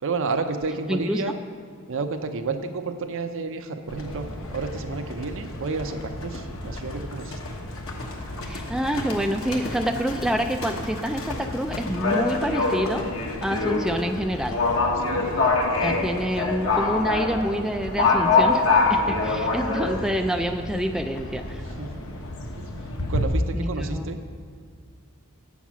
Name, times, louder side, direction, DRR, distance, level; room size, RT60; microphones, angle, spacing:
voice 1, 0.0-1.4 1.9-7.4 15.0-15.5 19.3-19.8 21.8-21.9 22.6-22.7 23.0-24.2, right 4 dB, 60° right, 7 dB, 0.7 m, -31 dB
voice 2, 0.9-1.2 8.5-13.1 13.4-14.6 15.8-21.6 23.5-24.1, equal, 5° right, 4 dB, 0.3 m, -27 dB
Livestock farm animals working animals, 3.9-23.2, left 3 dB, 65° left, 1.2 m, -27 dB
8.2 x 7.2 x 6.1 m, 2.1 s
head